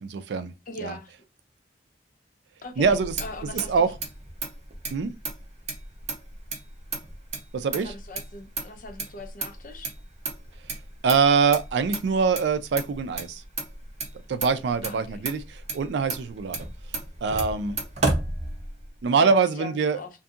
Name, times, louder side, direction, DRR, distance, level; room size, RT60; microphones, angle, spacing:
voice 1, 0.0-0.5 0.8-1.0 2.8-3.1 3.5-3.9 4.9-5.1 7.5-7.9 11.0-13.4 14.3-16.7 17.2-17.8 19.0-20.0, right 5 dB, 70° right, 0.4 m, -24 dB
voice 2, 0.7-1.1 2.6-3.9 7.7-9.9 14.8-15.3 19.2-20.1, left 3 dB, 50° left, 0.6 m, -40 dB
Motor vehicle (road), 2.8-19.0, right 3 dB, 40° right, 0.7 m, -34 dB
2.6 x 2.6 x 2.4 m
head